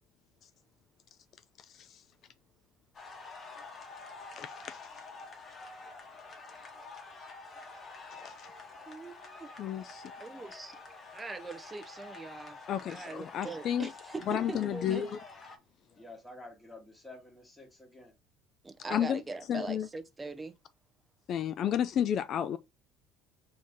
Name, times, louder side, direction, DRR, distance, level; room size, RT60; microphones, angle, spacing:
sound 1, 2.9-15.6, left 3 dB, 30° left, 1.0 m, -48 dB
voice 1, 4.4-4.8 8.2-8.5 9.6-10.0 12.7-13.9 14.3-15.2 18.9-19.2 19.5-19.9 21.3-22.6, left 9 dB, 50° left, 0.3 m, -32 dB
voice 2, 8.9-9.5 10.2-10.8 11.1-12.6 12.9-15.1 18.6-20.5, right 3 dB, 15° right, 0.6 m, -41 dB
voice 3, 16.0-18.1, left 2 dB, 5° left, 1.3 m, -50 dB
4.8 x 2.7 x 3.6 m
cardioid pair, 125°, 0 cm